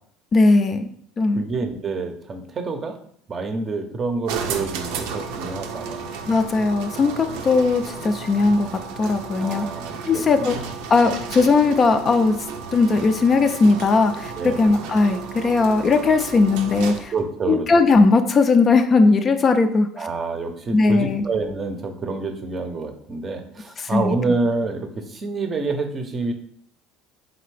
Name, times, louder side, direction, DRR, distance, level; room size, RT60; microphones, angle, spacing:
voice 1, 0.3-0.9 1.2-1.4 6.3-8.7 9.0-9.7 10.1-10.5 10.9-12.4 12.7-17.1 17.5-20.1 20.7-21.3 23.8-24.2, left 3 dB, 30° left, 8 dB, 0.3 m, -18 dB
voice 2, 1.4-3.0 3.3-6.0 7.2-7.4 9.4-10.5 14.4-14.6 17.1-17.7 20.0-26.3, right 3 dB, 30° right, 6 dB, 0.6 m, -27 dB
sound 1, 4.3-17.2, right 5 dB, 80° right, 0.5 m, -33 dB
3.8 x 3.3 x 3.2 m, 0.64 s
supercardioid pair, 110°, 0 cm